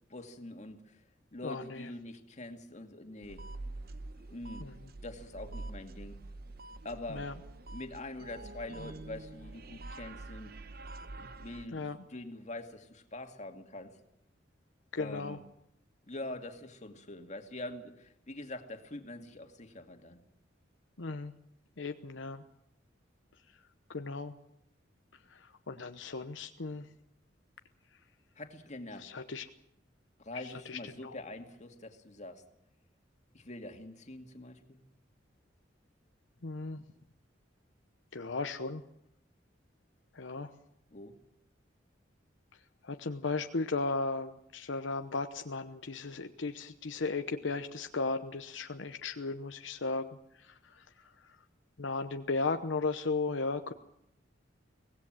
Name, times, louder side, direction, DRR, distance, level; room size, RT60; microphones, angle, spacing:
voice 1, 0.1-1.0 1.3-3.5 4.3-4.7 5.0-6.2 6.8-7.3 7.7-10.5 11.4-14.0 15.0-15.4 16.1-20.2 28.4-29.1 30.2-32.4 33.3-34.8 40.9-41.1, left 2 dB, 40° left, 5 dB, 2.3 m, -44 dB
voice 2, 1.4-1.9 4.6-4.7 7.1-7.3 11.7-12.0 14.9-15.4 21.0-21.3 21.8-22.4 23.9-24.3 25.7-26.8 29.0-29.4 30.7-30.8 36.4-36.8 38.1-38.8 40.2-40.5 42.9-50.1 51.8-53.7, left 3 dB, 80° left, 7 dB, 0.9 m, -35 dB
sound 1, 3.2-11.7, right 2 dB, 55° right, 1.0 m, -46 dB
24.0 x 17.5 x 7.5 m, 0.78 s
head